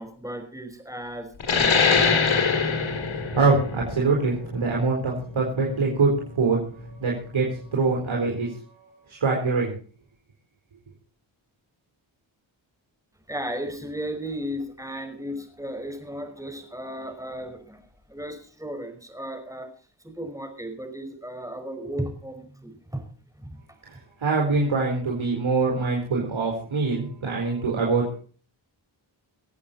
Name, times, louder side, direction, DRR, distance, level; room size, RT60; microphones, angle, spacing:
voice 1, 0.0-2.7 13.3-17.8 18.1-19.7 20.0-23.0 23.4-23.6, equal, 5° right, 5 dB, 5.4 m, -35 dB
sound 1, 1.4-6.5, left 5 dB, 70° left, 2.7 m, -24 dB
voice 2, 3.1-6.6 7.0-8.5 9.1-9.7 24.2-28.2, right 4 dB, 75° right, -2 dB, 4.3 m, -24 dB
25.0 x 8.5 x 4.3 m, 0.41 s
cardioid pair, 50°, 48 cm